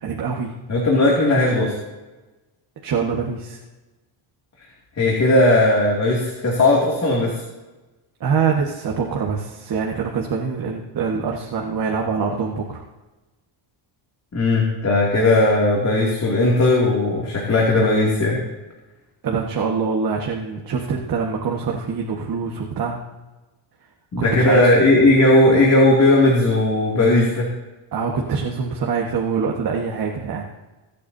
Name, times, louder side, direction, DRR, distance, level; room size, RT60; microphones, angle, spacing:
voice 1, 0.0-0.5 2.8-3.6 8.2-12.8 19.2-23.0 24.2-24.7 27.9-30.4, right 5 dB, 45° right, -1 dB, 1.6 m, -24 dB
voice 2, 0.7-1.7 5.0-7.4 14.3-18.4 24.1-27.5, left 2 dB, 35° left, -3 dB, 2.6 m, -17 dB
24.5 x 8.5 x 2.8 m, 1.1 s
cardioid pair, 120°, 48 cm